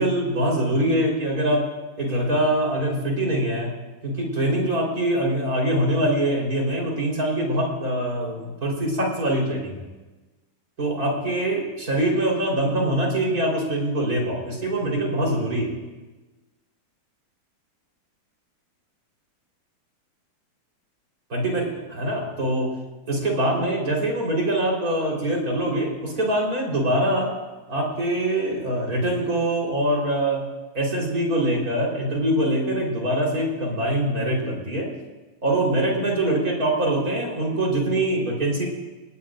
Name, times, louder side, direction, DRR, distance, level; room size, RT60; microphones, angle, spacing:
voice 1, 0.0-1.6 2.0-3.7 4.0-9.7 10.8-15.7 21.3-21.7 22.0-22.7 23.1-27.3 27.7-30.5 30.7-34.9 35.4-38.7, right 1 dB, 25° right, -2 dB, 4.3 m, -23 dB
30.0 x 18.5 x 2.6 m, 1.2 s
omnidirectional pair, 4.4 m